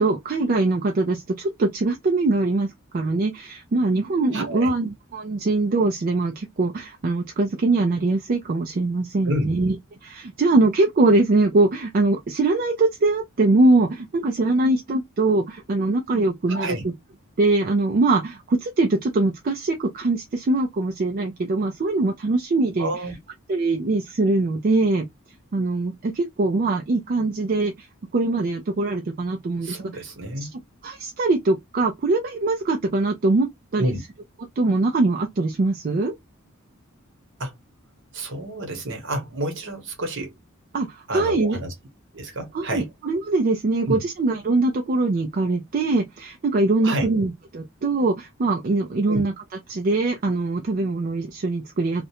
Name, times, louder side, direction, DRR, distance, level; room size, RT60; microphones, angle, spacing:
voice 1, 0.0-9.8 10.0-16.9 17.4-22.9 23.5-25.1 25.5-27.9 28.1-30.0 30.4-30.5 30.8-33.9 34.6-36.1 40.7-41.6 42.5-49.3 49.7-52.1, right 2 dB, 40° right, 0.4 m, -22 dB
voice 2, 4.3-4.7 9.2-9.5 16.5-16.8 22.8-23.1 29.6-30.5 33.8-34.0 37.4-37.5 38.1-40.4 41.1-41.7 42.1-42.9 43.9-44.0 46.8-47.1 49.1-49.2, right 1 dB, 60° right, 1.1 m, -29 dB
2.5 x 2.1 x 2.8 m
head